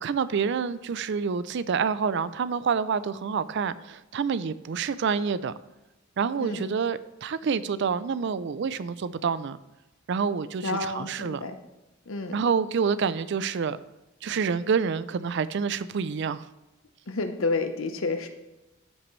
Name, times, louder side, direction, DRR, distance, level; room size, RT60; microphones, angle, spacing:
voice 1, 0.0-5.5 6.2-9.6 10.1-11.4 12.3-13.8 14.2-16.4, right 6 dB, 55° right, 15 dB, 0.4 m, -27 dB
voice 2, 10.6-11.6 12.1-12.4 17.1-18.3, left 3 dB, 70° left, 8 dB, 0.9 m, -30 dB
13.5 x 5.9 x 3.2 m, 0.99 s
head